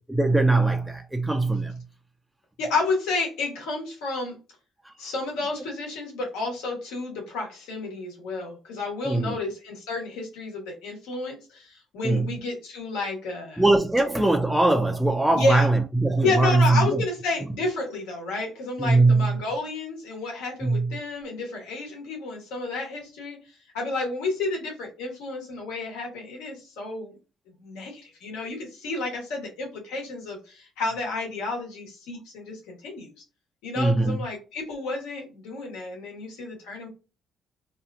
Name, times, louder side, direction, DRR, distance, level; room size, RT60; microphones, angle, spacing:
voice 1, 0.1-1.8 4.8-4.9 9.0-9.4 12.0-12.3 13.6-17.0 18.8-19.4 20.6-21.0 33.8-34.3, right 2 dB, 10° right, 0.4 m, -21 dB
voice 2, 2.6-4.3 5.0-13.6 15.4-15.7 16.2-27.2 27.6-33.1 33.6-36.9, left 3 dB, 85° left, 1.2 m, -31 dB
2.8 x 2.3 x 2.4 m
supercardioid pair, 65°, 0 cm